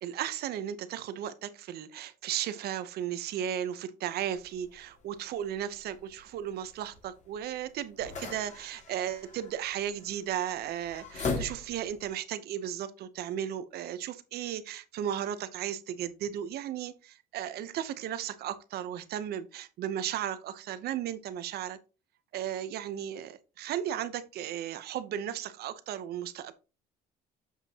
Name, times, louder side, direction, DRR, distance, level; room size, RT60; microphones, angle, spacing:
voice 1, 0.0-21.8 22.3-26.5, right 10 dB, 70° right, 0.8 m, -35 dB
sound 1, 4.4-12.1, left 4 dB, 45° left, 2.1 m, -41 dB
7.4 x 5.9 x 2.9 m
cardioid pair, 110°, 17 cm